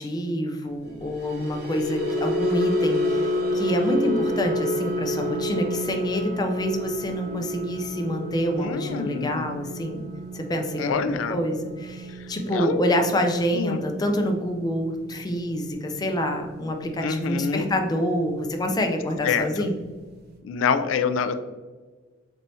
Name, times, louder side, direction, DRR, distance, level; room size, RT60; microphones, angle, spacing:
voice 1, 0.0-10.0 10.3-19.8, equal, 20° left, 4 dB, 0.4 m, -27 dB
sound 1, 1.0-17.4 17.8-18.1 18.4-18.6, left 1 dB, 55° right, 0.6 m, -30 dB
voice 2, 8.6-9.5 10.8-11.4 12.5-12.8 13.5-13.8 17.0-17.7 19.2-19.5 20.4-21.4, left 6 dB, 90° left, 10 dB, 0.3 m, -26 dB
4.2 x 3.3 x 2.6 m, 1.4 s
head